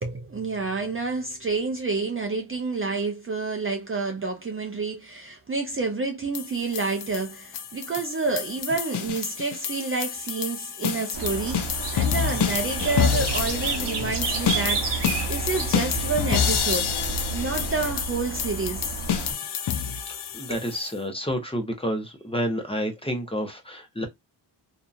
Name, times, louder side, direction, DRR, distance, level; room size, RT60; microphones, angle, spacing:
voice 1, 0.0-16.9 17.3-18.9 20.5-20.6, right 4 dB, 30° right, 0.5 m, -29 dB
sound 1, 6.3-20.9, left 8 dB, 60° left, 0.6 m, -28 dB
sound 2, 11.1-19.3, right 6 dB, 65° right, 0.8 m, -31 dB
sound 3, 12.8-17.9, left 2 dB, 80° left, 1.0 m, -36 dB
voice 2, 20.0-24.0, equal, 10° left, 0.7 m, -29 dB
2.7 x 2.4 x 2.3 m
wide cardioid pair, 130°, 45 cm